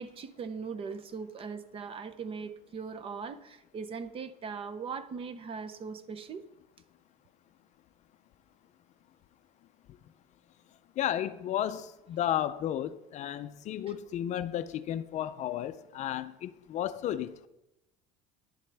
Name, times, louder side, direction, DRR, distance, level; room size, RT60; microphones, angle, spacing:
voice 1, 0.0-6.5, right 5 dB, 30° right, 0.7 m, -40 dB
voice 2, 11.0-17.5, left 11 dB, 40° left, 0.4 m, -33 dB
11.0 x 10.5 x 3.4 m
cardioid pair, 140°, 18 cm